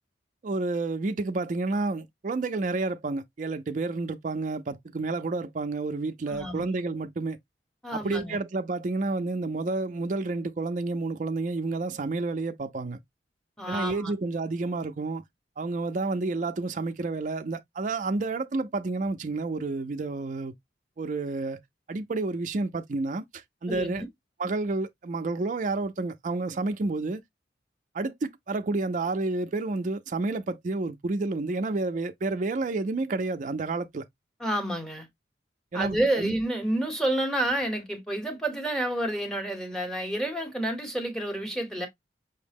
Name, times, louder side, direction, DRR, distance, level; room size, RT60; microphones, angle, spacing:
voice 1, 0.4-7.4 7.9-13.0 13.7-15.2 15.6-20.5 21.0-21.6 21.9-24.0 24.4-27.2 27.9-34.0 35.7-36.3, right 3 dB, 45° right, 0.4 m, -30 dB
voice 2, 6.3-6.7 7.8-8.4 13.6-14.1 23.7-24.1 34.4-35.1 35.7-41.9, right 1 dB, 5° left, 1.0 m, -29 dB
5.5 x 2.0 x 3.4 m
head